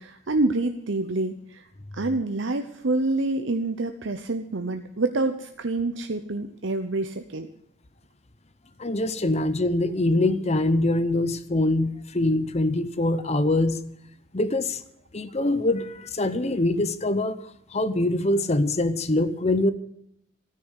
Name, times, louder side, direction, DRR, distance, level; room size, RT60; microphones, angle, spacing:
voice 1, 0.0-1.7 1.9-7.5, right 2 dB, 60° right, 7 dB, 0.9 m, -27 dB
voice 2, 8.8-13.8 14.3-14.8 15.1-17.4 17.7-19.7, left 2 dB, 30° left, 13 dB, 0.8 m, -24 dB
13.5 x 9.7 x 8.2 m, 0.73 s
head